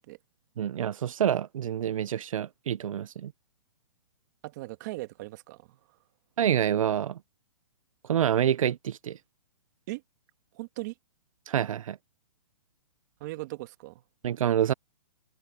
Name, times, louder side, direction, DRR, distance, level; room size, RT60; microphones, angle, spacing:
voice 1, 0.6-3.3 6.4-7.2 8.1-9.2 11.5-12.0 14.2-14.7, right 10 dB, 75° right, 0.5 m, -27 dB
voice 2, 4.4-6.0 9.9-10.0 10.5-10.9 13.2-14.0, right 21 dB, 30° right, 1.9 m, -39 dB
open air
hypercardioid pair, 165°, 17 cm